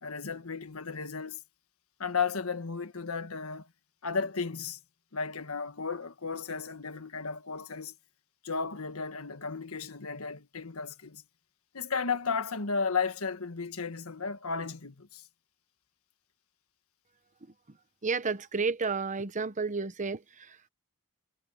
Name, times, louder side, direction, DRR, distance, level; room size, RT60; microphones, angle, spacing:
voice 1, 0.0-1.4 2.0-3.7 4.0-4.8 5.1-7.9 8.4-11.2 11.7-15.2, left 5 dB, 75° left, 1.6 m, -34 dB
voice 2, 18.0-20.6, right 4 dB, 35° right, 1.0 m, -31 dB
head